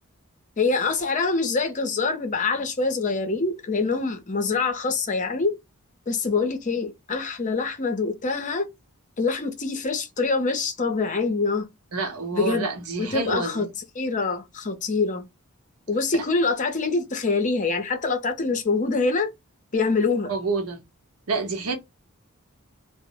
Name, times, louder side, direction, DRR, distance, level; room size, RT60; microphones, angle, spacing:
voice 1, 0.6-5.6 6.1-8.7 9.2-11.7 12.3-12.7 13.0-13.7 14.0-15.2 15.9-19.3 19.7-20.3, left 4 dB, 35° left, 0.6 m, -25 dB
voice 2, 11.9-13.7 16.1-16.2 20.3-20.8 21.3-21.8, right 4 dB, 90° right, 0.7 m, -28 dB
2.0 x 2.0 x 3.7 m
head